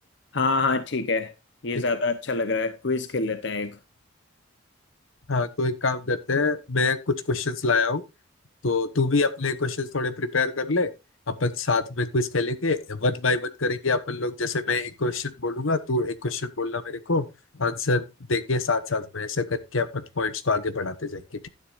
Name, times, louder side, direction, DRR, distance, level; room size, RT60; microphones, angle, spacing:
voice 1, 0.3-1.3 1.6-3.8, left 3 dB, 60° left, 0.8 m, -26 dB
voice 2, 5.3-8.0 8.6-10.9 11.3-17.3 17.6-18.0 18.3-21.5, left 3 dB, 75° left, 1.1 m, -26 dB
12.0 x 10.0 x 2.5 m
head